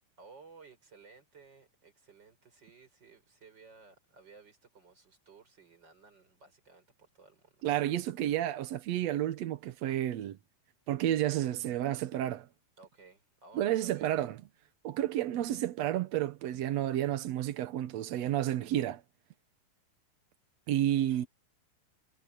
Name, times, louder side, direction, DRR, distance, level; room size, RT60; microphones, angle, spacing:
voice 1, 0.2-7.7 12.8-14.1 18.3-18.9 20.7-21.1, right 4 dB, 25° right, 5.6 m, -57 dB
voice 2, 7.6-10.4 10.9-12.5 13.5-14.4 14.8-19.0 20.7-21.3, right 12 dB, 80° right, 1.5 m, -31 dB
omnidirectional pair, 4.4 m